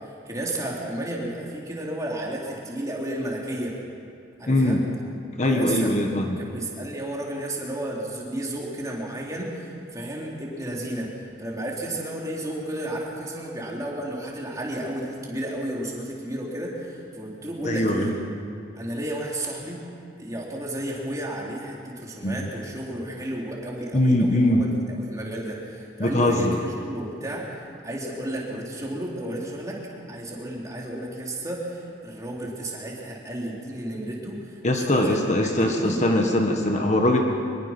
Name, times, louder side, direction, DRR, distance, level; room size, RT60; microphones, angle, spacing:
voice 1, 0.0-3.8 4.4-4.8 5.4-18.1 18.8-19.8 20.2-27.5 27.8-35.2 35.6-36.0, right 1 dB, 20° right, -3 dB, 3.7 m, -32 dB
voice 2, 4.5-4.8 5.4-6.4 17.6-18.1 22.2-22.5 23.9-24.6 26.0-26.6 34.6-37.2, left 1 dB, 40° left, 2 dB, 1.5 m, -21 dB
24.0 x 22.0 x 6.1 m, 2.4 s
head